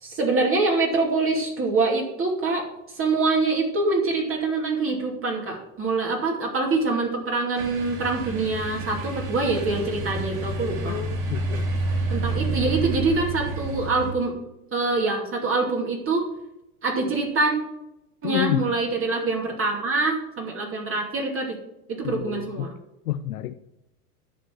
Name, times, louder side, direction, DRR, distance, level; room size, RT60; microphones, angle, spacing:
voice 1, 0.0-2.7 2.9-11.0 12.1-14.3 14.7-16.2 16.8-17.5 18.2-21.5 21.9-22.7, right 3 dB, 30° right, -1 dB, 2.6 m, -25 dB
sound 1, 7.5-14.1, right 2 dB, 60° right, 2.9 m, -29 dB
voice 2, 10.9-11.6 18.2-18.6 22.0-22.7 23.1-23.5, left 13 dB, 75° left, 10 dB, 0.7 m, -29 dB
10.0 x 6.1 x 6.2 m, 0.89 s
hypercardioid pair, 95°, 45 cm